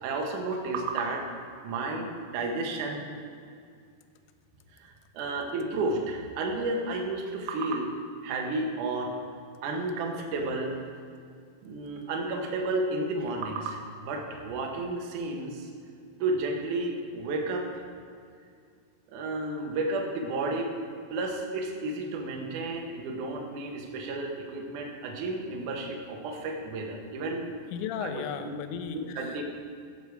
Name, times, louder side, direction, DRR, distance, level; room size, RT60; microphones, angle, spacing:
voice 1, 0.0-1.2 1.6-3.1 4.7-7.9 8.2-9.1 9.6-10.7 11.6-15.7 16.2-17.8 19.1-20.7 21.1-27.5 28.0-28.5 28.9-29.4, right 2 dB, 75° right, 1 dB, 1.8 m, -32 dB
voice 2, 27.7-29.4, left 8 dB, 80° left, 9 dB, 2.7 m, -35 dB
14.5 x 6.9 x 4.7 m, 2.3 s
omnidirectional pair, 5.4 m